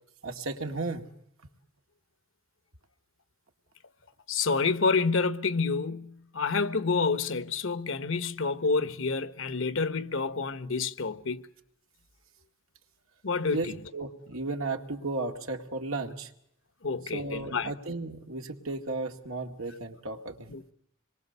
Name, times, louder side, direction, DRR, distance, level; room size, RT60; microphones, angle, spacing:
voice 1, 0.2-1.0 13.5-16.3 17.1-20.5, right 3 dB, 90° right, 2.2 m, -34 dB
voice 2, 4.3-11.5 13.2-13.8 16.8-17.7 20.5-20.7, left 4 dB, 65° left, 1.2 m, -28 dB
26.5 x 22.0 x 6.9 m
head